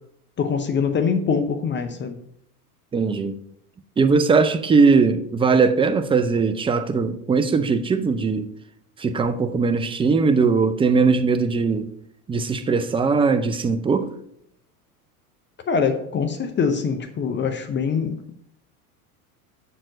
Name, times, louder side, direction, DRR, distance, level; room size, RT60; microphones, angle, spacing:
voice 1, 0.4-2.2 15.7-18.4, left 6 dB, 25° left, 0.7 m, -23 dB
voice 2, 2.9-3.3 4.0-8.5 9.0-11.9 12.3-14.1, right 4 dB, 10° right, 0.5 m, -20 dB
7.4 x 4.7 x 4.8 m
hypercardioid pair, 90°, 45 cm